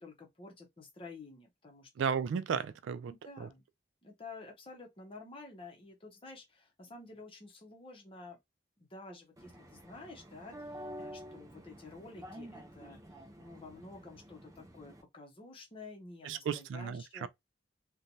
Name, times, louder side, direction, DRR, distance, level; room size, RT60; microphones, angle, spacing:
voice 1, 0.0-2.1 3.1-3.6 4.0-8.4 8.8-13.0 13.4-17.3, left 3 dB, 30° left, 0.7 m, -51 dB
voice 2, 2.0-3.1 3.4-3.5 16.2-17.3, right 7 dB, 85° right, 0.3 m, -34 dB
sound 1, 9.4-15.0, equal, 20° right, 0.4 m, -49 dB
3.1 x 2.2 x 2.6 m
head